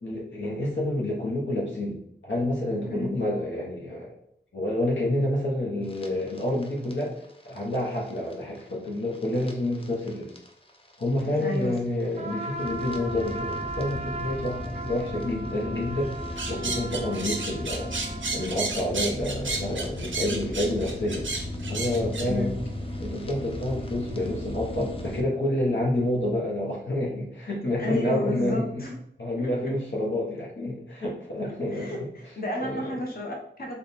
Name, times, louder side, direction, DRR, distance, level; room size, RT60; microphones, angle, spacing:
voice 1, 0.0-4.1 4.5-7.2 7.4-10.3 11.0-16.1 16.5-17.9 18.3-21.3 21.7-22.5 23.0-28.8 29.2-32.0 32.6-33.0, left 1 dB, 75° left, -4 dB, 0.8 m, -28 dB
voice 2, 2.8-3.2 11.4-11.7 22.2-22.5 27.8-29.0 29.4-29.7 31.7-33.8, left 1 dB, 50° left, -2 dB, 1.0 m, -32 dB
sound 1, 5.8-25.2, left 1 dB, 30° left, 0.6 m, -37 dB
Trumpet, 12.2-18.6, right 2 dB, 35° right, 0.6 m, -37 dB
sound 2, 16.4-22.3, right 3 dB, 80° right, 0.6 m, -32 dB
3.4 x 2.1 x 4.1 m, 0.74 s
wide cardioid pair, 45°, 19 cm